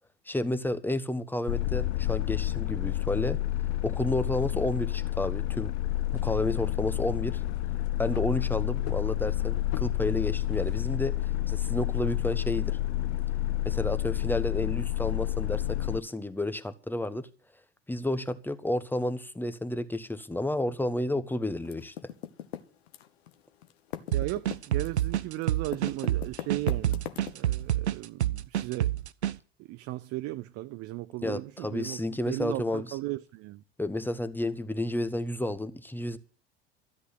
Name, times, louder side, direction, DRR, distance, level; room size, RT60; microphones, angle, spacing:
voice 1, 0.3-3.4 3.8-5.7 6.1-7.4 8.0-11.2 11.5-12.8 13.6-17.3 17.9-21.9 31.2-33.0 33.8-36.2, left 1 dB, 5° left, 1.2 m, -31 dB
sound 1, 1.5-16.0, left 15 dB, 55° left, 0.6 m, -29 dB
Typing, 21.6-23.3 23.6-27.6, left 12 dB, 70° left, 1.3 m, -40 dB
voice 2, 24.1-27.0 27.3-28.9 29.7-33.6, right 18 dB, 45° right, 0.6 m, -36 dB
sound 2, 24.1-29.4, right 12 dB, 85° right, 0.7 m, -28 dB
13.0 x 8.6 x 8.3 m
figure-of-eight pair, 70°, 33 cm